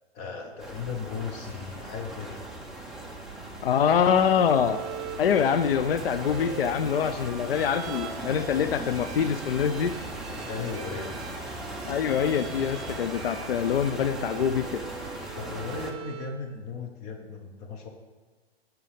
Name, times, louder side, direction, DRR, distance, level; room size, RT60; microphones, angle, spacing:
voice 1, 0.1-2.5 10.4-11.1 15.3-17.9, left 5 dB, 25° left, 3 dB, 0.8 m, -36 dB
sound 1, 0.6-15.9, right 1 dB, ahead, 0.4 m, -38 dB
voice 2, 3.6-4.8 5.2-10.0 11.9-14.8, left 7 dB, 65° left, 10 dB, 0.5 m, -25 dB
Bowed string instrument, 4.3-16.4, right 8 dB, 35° right, 1.0 m, -43 dB
11.0 x 6.1 x 3.5 m, 1.3 s
figure-of-eight pair, 125°, 31 cm